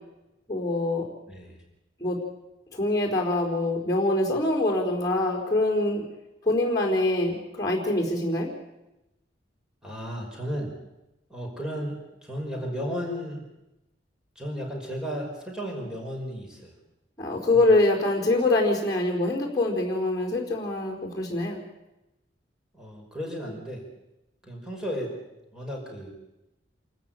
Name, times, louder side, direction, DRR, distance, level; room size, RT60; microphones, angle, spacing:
voice 1, 0.5-1.0 2.0-2.2 2.7-6.0 6.4-8.5 17.2-21.6, left 2 dB, 20° left, -1 dB, 4.4 m, -24 dB
voice 2, 1.3-1.6 9.8-10.8 11.3-13.5 14.4-16.7 17.5-17.8 22.7-23.9 24.4-25.1 25.5-26.1, equal, 5° right, -1 dB, 5.5 m, -34 dB
28.0 x 14.0 x 9.1 m, 0.96 s
head